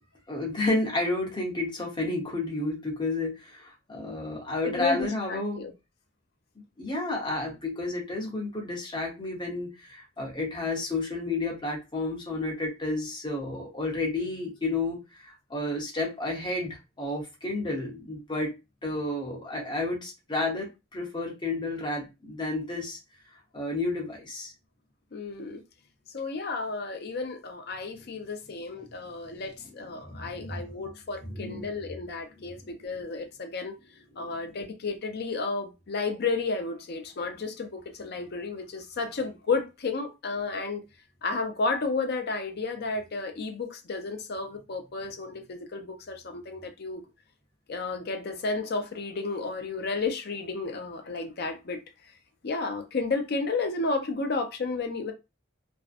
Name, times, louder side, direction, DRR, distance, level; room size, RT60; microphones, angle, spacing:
voice 1, 0.3-5.7 6.8-18.5 18.8-23.0 23.5-24.5 28.8-29.1 29.8-30.8 31.2-31.7 34.2-34.3, left 2 dB, 25° left, 0.9 m, -31 dB
voice 2, 4.6-5.7 25.1-25.6 26.1-33.8 34.2-40.8 41.2-47.0 47.7-51.8 52.4-55.1, left 3 dB, 55° left, 0.5 m, -32 dB
2.5 x 2.1 x 2.4 m
head